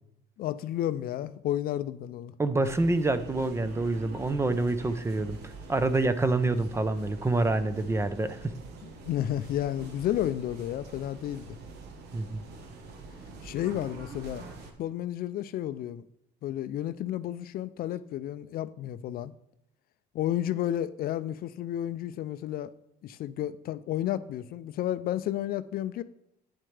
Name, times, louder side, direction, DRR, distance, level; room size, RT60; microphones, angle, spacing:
voice 1, 0.4-2.3 9.0-11.6 13.4-14.5 14.8-16.0 16.4-19.3 20.1-22.7 23.0-26.0, left 12 dB, 60° left, 0.4 m, -32 dB
voice 2, 2.4-8.5 12.1-12.4, right 2 dB, 15° right, 0.6 m, -27 dB
sound 1, 2.6-14.7, right 3 dB, 75° right, 1.2 m, -45 dB
8.8 x 7.5 x 3.3 m
cardioid pair, 110°, 17 cm